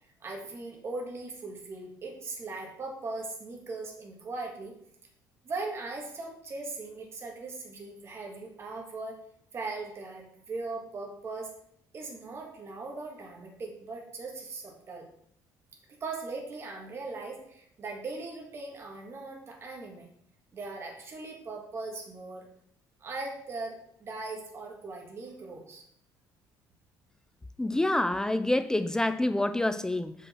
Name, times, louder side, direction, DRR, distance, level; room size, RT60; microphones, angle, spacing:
voice 1, 0.2-4.8 5.4-9.2 9.5-11.5 11.9-15.1 15.9-20.1 20.5-22.5 23.0-25.8, right 3 dB, 35° right, 1.6 m, -39 dB
voice 2, 27.6-30.1, left 1 dB, 10° left, 0.3 m, -27 dB
6.2 x 5.4 x 4.3 m
cardioid pair, 135°, 8 cm